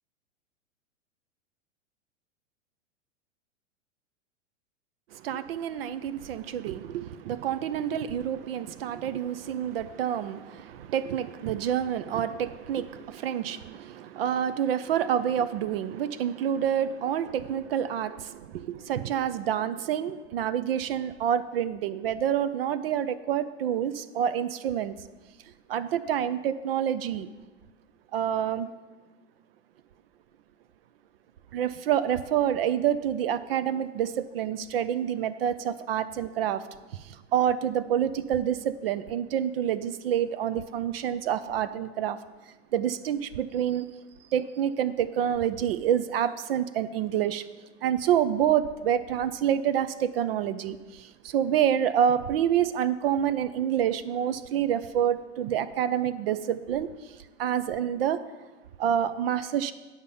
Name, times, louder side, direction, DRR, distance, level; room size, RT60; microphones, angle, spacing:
voice 1, 5.2-24.9 25.7-27.3 28.1-28.7 31.5-36.6 37.3-42.2 42.7-43.8 44.3-47.4 47.8-56.9 57.4-58.2 58.8-59.7, right 9 dB, 50° right, 13 dB, 0.5 m, -27 dB
9.4 x 5.7 x 6.8 m, 1.2 s
figure-of-eight pair, 100°, 37 cm